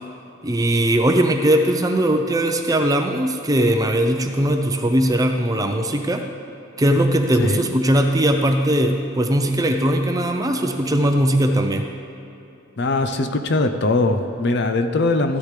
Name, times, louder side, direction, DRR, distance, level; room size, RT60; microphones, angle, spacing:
voice 1, 0.4-6.2 6.8-11.9, right 1 dB, 15° right, 5 dB, 0.5 m, -19 dB
voice 2, 12.8-15.4, left 2 dB, 55° left, 7 dB, 0.6 m, -21 dB
14.0 x 9.9 x 3.3 m, 2.9 s
head